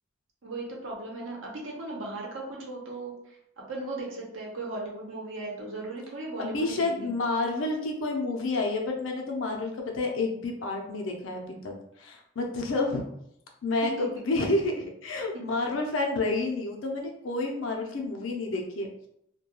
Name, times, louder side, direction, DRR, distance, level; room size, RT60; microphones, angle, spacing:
voice 1, 0.4-3.1 3.7-7.1 14.0-14.1, right 2 dB, 85° right, -2 dB, 0.8 m, -37 dB
voice 2, 6.4-13.1 13.6-19.1, left 2 dB, 90° left, 1 dB, 0.6 m, -29 dB
2.3 x 2.2 x 2.9 m, 0.75 s
head